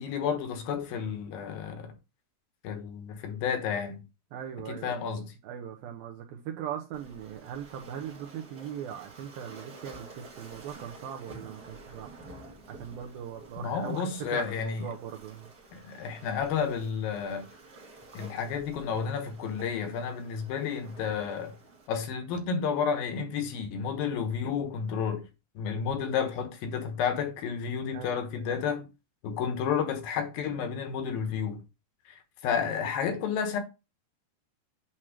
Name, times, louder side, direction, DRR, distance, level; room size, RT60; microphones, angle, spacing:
voice 1, 0.0-1.9 2.6-4.0 4.7-5.3 13.6-14.9 15.7-17.5 18.1-21.5 21.9-25.3 25.6-28.9 29.2-31.6 32.1-33.6, left 6 dB, 70° left, 2.6 m, -31 dB
voice 2, 4.3-12.3 12.7-15.5 27.9-28.5, right 9 dB, 75° right, 2.3 m, -40 dB
Waves surf, 6.9-21.9, right 3 dB, 55° right, 1.0 m, -50 dB
8.6 x 3.0 x 6.3 m
omnidirectional pair, 4.8 m